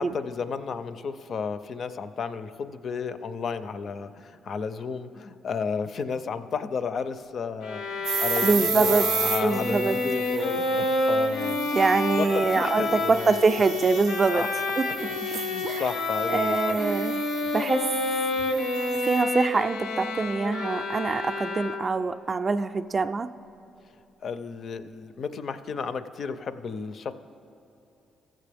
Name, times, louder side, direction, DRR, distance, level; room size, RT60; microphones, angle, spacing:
voice 1, 0.0-11.8 12.1-13.4 14.3-14.5 15.0-16.8 24.2-27.1, left 5 dB, 55° left, 12 dB, 0.4 m, -33 dB
Bowed string instrument, 7.6-22.1, left 2 dB, 85° left, 0.7 m, -29 dB
sound 1, 8.0-19.2, right 7 dB, 90° right, 0.5 m, -34 dB
voice 2, 8.4-9.1 9.4-10.0 11.7-14.5 14.8-14.9 15.6-15.8 16.3-17.2 17.5-17.9 19.0-23.3, right 4 dB, 35° right, 9 dB, 0.3 m, -24 dB
14.5 x 7.5 x 3.4 m, 2.9 s
cardioid pair, 90°, 0 cm